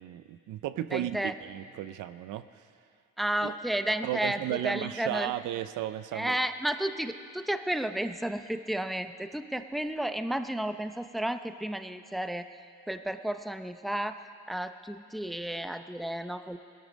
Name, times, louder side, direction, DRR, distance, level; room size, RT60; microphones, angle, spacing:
voice 1, 0.0-2.7 3.4-3.5 4.0-6.4, right 13 dB, 85° right, 13 dB, 0.6 m, -34 dB
voice 2, 0.9-1.3 3.2-5.3 6.1-12.5 12.9-14.2 14.5-16.6, right 1 dB, ahead, 9 dB, 0.6 m, -32 dB
18.0 x 13.5 x 5.2 m, 2.2 s
cardioid pair, 90°, 30 cm